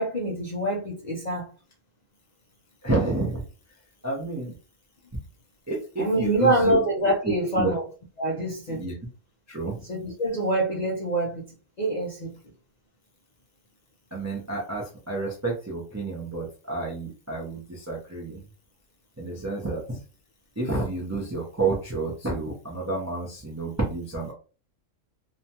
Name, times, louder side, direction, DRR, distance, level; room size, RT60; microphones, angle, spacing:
voice 1, 0.0-1.5 6.0-7.8 8.2-8.9 9.8-11.5 11.8-12.4, right 1 dB, 50° left, 0.5 m, -25 dB
voice 2, 2.8-3.4 4.0-4.5 5.7-6.8 7.6-7.7 8.7-8.9 9.5-9.8 14.1-18.4 19.2-20.0 20.6-24.3, right 3 dB, 25° right, 0.4 m, -30 dB
2.8 x 2.2 x 2.8 m
omnidirectional pair, 1.3 m